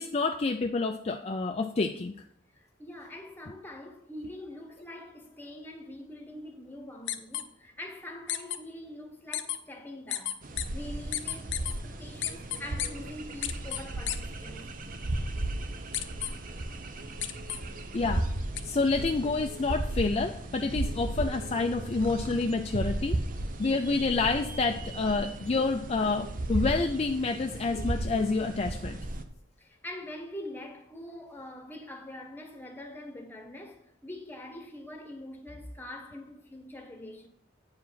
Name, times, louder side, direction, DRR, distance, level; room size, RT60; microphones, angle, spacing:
voice 1, 0.0-2.2 17.9-18.3 18.6-23.2 23.6-29.0, left 3 dB, 35° left, 0.4 m, -28 dB
voice 2, 2.5-14.7 18.5-18.8 29.6-37.3, left 1 dB, 10° left, 1.3 m, -44 dB
sound 1, 7.1-7.4 8.3-8.6 9.3-9.6 10.1-10.6 11.1-11.7 12.2-12.9 13.4-13.8 14.1-14.2 15.9-16.3 17.2-17.6 18.6-18.7, left 12 dB, 85° left, 0.7 m, -31 dB
sound 2, 10.4-29.2, right 1 dB, 45° right, 0.8 m, -35 dB
9.4 x 4.9 x 5.6 m
head